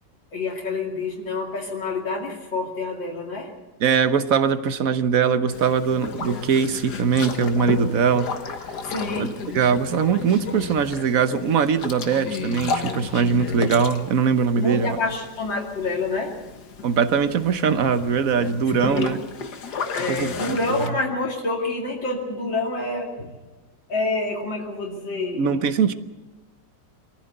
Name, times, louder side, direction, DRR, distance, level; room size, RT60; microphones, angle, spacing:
voice 1, 0.3-3.5 8.9-9.3 14.6-16.6 18.8-19.2 20.0-23.3 23.9-25.5, left 3 dB, 85° left, -2 dB, 3.3 m, -27 dB
voice 2, 3.8-8.3 9.2-9.3 9.5-15.0 16.8-19.2 20.1-20.8 25.3-25.9, right 6 dB, 55° right, 11 dB, 1.3 m, -21 dB
Boat Water vehicle, 5.5-20.9, left 5 dB, 65° left, 1.9 m, -33 dB
23.5 x 14.5 x 8.0 m, 1.2 s
omnidirectional pair, 2.0 m